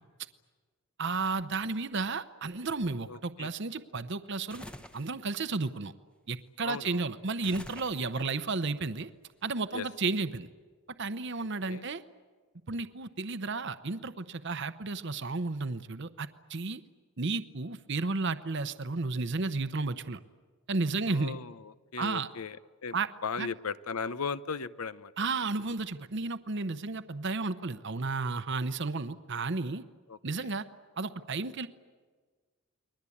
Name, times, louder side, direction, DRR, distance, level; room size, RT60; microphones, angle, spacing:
voice 1, 1.0-4.6 4.9-5.9 6.3-9.1 9.4-10.5 11.0-12.0 12.7-16.8 17.2-20.2 20.7-21.4 22.0-22.3 22.9-23.1 23.4-23.5 25.2-29.8 30.2-30.6 31.0-31.7, right 3 dB, 55° right, 11 dB, 0.8 m, -33 dB
voice 2, 3.1-3.5 6.6-7.0 9.7-9.9 11.7-11.8 21.1-22.6 22.8-25.1 30.1-30.5, left 5 dB, 85° left, 15 dB, 0.8 m, -37 dB
sound 1, 4.5-5.1 7.4-8.4, left 1 dB, 5° left, 0.9 m, -46 dB
30.0 x 22.0 x 8.6 m, 1.5 s
head